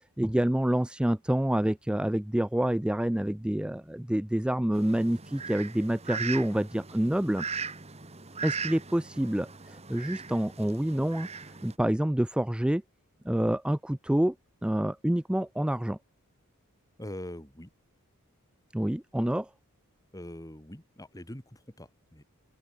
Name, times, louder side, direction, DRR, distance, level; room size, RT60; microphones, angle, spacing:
voice 1, 0.2-7.4 8.4-11.3 11.6-12.8 13.2-14.4 14.6-16.0 18.7-19.5, right 1 dB, 5° right, 0.4 m, -27 dB
Fowl, 4.7-11.7, right 5 dB, 30° right, 1.8 m, -39 dB
voice 2, 17.0-17.7 20.1-22.2, left 1 dB, 15° left, 4.4 m, -43 dB
open air
head